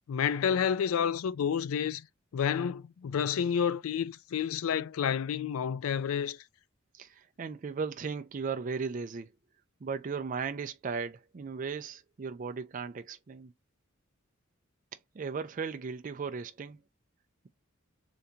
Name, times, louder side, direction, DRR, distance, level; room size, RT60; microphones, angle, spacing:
voice 1, 0.1-2.0 2.3-6.4, left 7 dB, 80° left, 0.3 m, -29 dB
voice 2, 6.9-9.3 9.8-13.5 15.1-16.8, right 5 dB, 40° right, 0.4 m, -36 dB
3.4 x 2.6 x 2.7 m
head